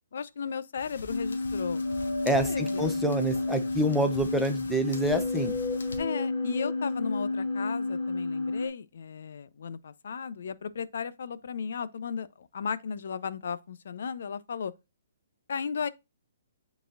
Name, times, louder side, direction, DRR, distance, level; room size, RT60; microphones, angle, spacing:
voice 1, 0.1-1.8 2.4-2.8 6.0-14.7 15.5-15.9, left 6 dB, 65° left, 0.6 m, -35 dB
sound 1, 0.8-6.0, left 2 dB, 85° left, 1.3 m, -45 dB
sound 2, 1.1-8.7, left 3 dB, 40° left, 2.9 m, -30 dB
voice 2, 2.2-5.5, right 1 dB, ahead, 0.7 m, -27 dB
9.2 x 4.1 x 2.5 m
hypercardioid pair, 165°, 0 cm